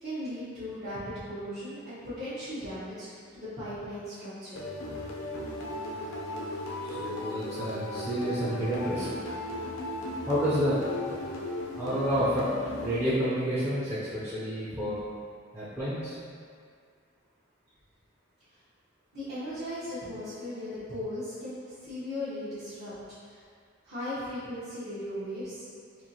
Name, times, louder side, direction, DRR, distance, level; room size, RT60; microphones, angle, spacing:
voice 1, 0.0-1.0 1.2-4.7 19.1-22.9 23.3-23.4 23.8-25.7, left 1 dB, 50° right, -15 dB, 1.0 m, -37 dB
sound 1, 4.6-13.5, left 2 dB, 80° left, 0.6 m, -36 dB
voice 2, 6.8-9.1 10.3-10.7 11.8-12.5 12.8-15.0 15.5-16.2, equal, 10° right, -13 dB, 0.6 m, -29 dB
4.4 x 2.5 x 2.8 m, 2.1 s
head